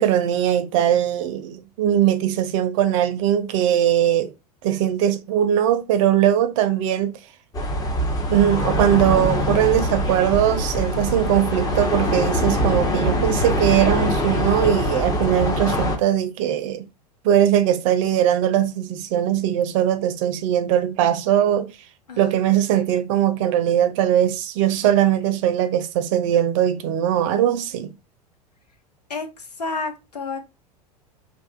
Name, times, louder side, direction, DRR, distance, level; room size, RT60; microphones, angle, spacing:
voice 1, 0.0-4.3 4.6-7.2 8.3-16.8 17.2-21.7 22.2-27.9, right 11 dB, 50° right, 0.5 m, -20 dB
sound 1, 7.5-16.0, left 1 dB, 20° left, 0.6 m, -23 dB
voice 2, 11.2-11.7 22.1-22.6 29.1-30.4, left 3 dB, 85° left, 0.6 m, -32 dB
2.6 x 2.3 x 2.3 m
figure-of-eight pair, 85°, 20 cm